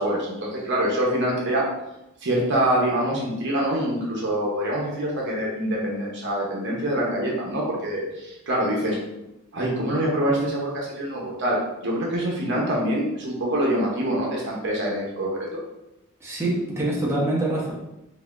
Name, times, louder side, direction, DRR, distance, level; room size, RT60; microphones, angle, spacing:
voice 1, 0.0-1.7 2.2-9.0 9.5-15.6, right 1 dB, 60° right, -3 dB, 0.8 m, -25 dB
voice 2, 16.2-17.7, right 1 dB, 15° right, -5 dB, 0.7 m, -25 dB
4.0 x 2.7 x 2.4 m, 0.91 s
head